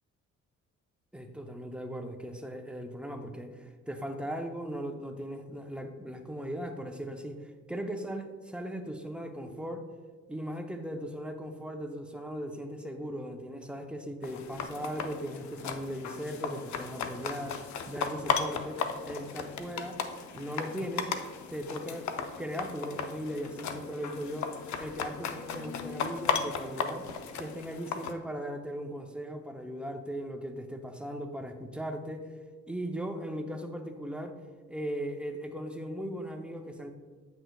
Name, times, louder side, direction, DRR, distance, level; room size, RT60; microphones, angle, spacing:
voice 1, 1.1-9.8 10.3-17.6 17.9-20.0 20.3-21.1 21.5-22.1 22.4-24.5 24.8-27.1 27.4-32.3 32.7-34.4 34.7-36.9, equal, 5° right, 5 dB, 0.6 m, -38 dB
sound 1, 14.2-28.1, left 6 dB, 70° left, 0.7 m, -36 dB
9.0 x 6.2 x 2.3 m, 1.5 s
cardioid pair, 90°, 30 cm